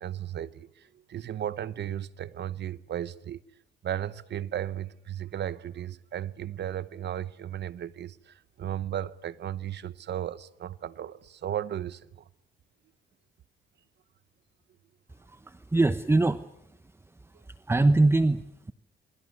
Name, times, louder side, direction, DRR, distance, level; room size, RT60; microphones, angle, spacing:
voice 1, 0.0-3.4 3.8-12.2, right 11 dB, 60° right, 0.9 m, -35 dB
voice 2, 15.1-16.8 17.1-18.7, right 2 dB, 10° right, 0.9 m, -25 dB
27.0 x 23.5 x 8.0 m
cardioid pair, 90°, 20 cm